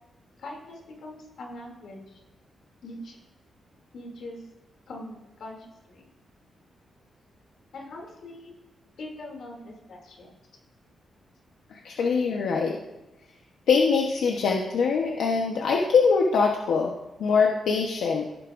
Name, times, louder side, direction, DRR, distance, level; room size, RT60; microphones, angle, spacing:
voice 1, 0.4-2.2 2.8-3.2 3.9-4.5 4.9-6.1 7.7-8.5 9.0-10.3, left 1 dB, 65° left, 0 dB, 2.7 m, -42 dB
voice 2, 11.7-12.8 13.7-16.9 17.2-18.2, left 5 dB, 90° left, 0 dB, 1.0 m, -23 dB
16.0 x 8.7 x 2.6 m, 1.0 s
wide cardioid pair, 160°, 0 cm